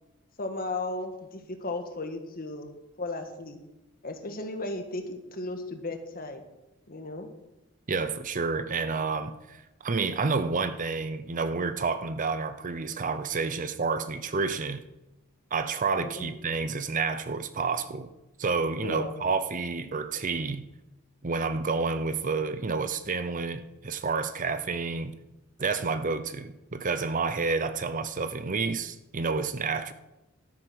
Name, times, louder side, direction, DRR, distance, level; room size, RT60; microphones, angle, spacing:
voice 1, 0.4-2.7 3.0-3.6 4.0-6.4 6.9-7.3 16.0-16.3 18.8-19.2, left 2 dB, 40° left, 1.6 m, -35 dB
voice 2, 7.9-14.8 15.5-18.1 18.4-20.7 21.2-25.2 25.6-29.9, right 4 dB, 35° right, 0.6 m, -29 dB
12.5 x 9.4 x 6.3 m
head